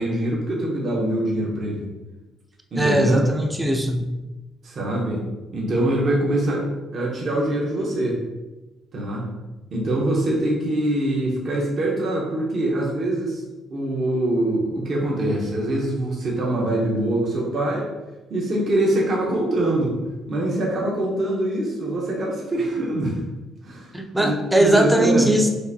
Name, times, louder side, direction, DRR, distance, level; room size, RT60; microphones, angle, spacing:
voice 1, 0.0-1.9 2.7-3.3 4.6-5.2 5.5-6.7 6.9-8.2 8.9-9.3 9.7-13.4 13.7-17.9 18.3-20.0 20.3-23.2 23.6-25.3, right 1 dB, 40° right, -3 dB, 0.8 m, -24 dB
voice 2, 2.8-4.1 23.9-25.5, right 1 dB, 5° right, 3 dB, 0.4 m, -20 dB
6.2 x 2.5 x 2.7 m, 1.1 s
cardioid pair, 150°, 0 cm